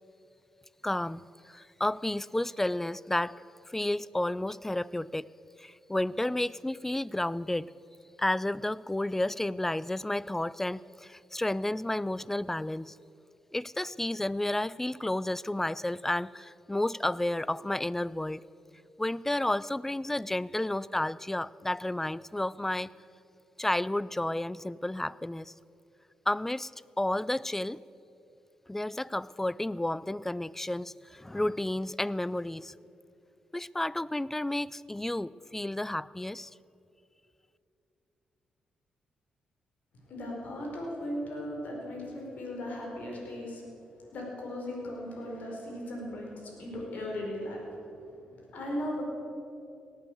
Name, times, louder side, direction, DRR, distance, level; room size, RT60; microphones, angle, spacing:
voice 1, 0.8-3.4 3.7-5.3 5.6-7.7 8.2-13.0 13.5-18.4 19.0-22.9 23.6-25.5 26.3-26.7 27.0-27.8 28.7-32.7 33.5-36.5, left 1 dB, 10° left, 21 dB, 0.4 m, -31 dB
voice 2, 40.1-43.6 44.0-47.6 48.2-49.0, left 1 dB, 70° left, -1 dB, 4.8 m, -37 dB
18.0 x 8.9 x 7.9 m, 2.7 s
supercardioid pair, 65°, 3 cm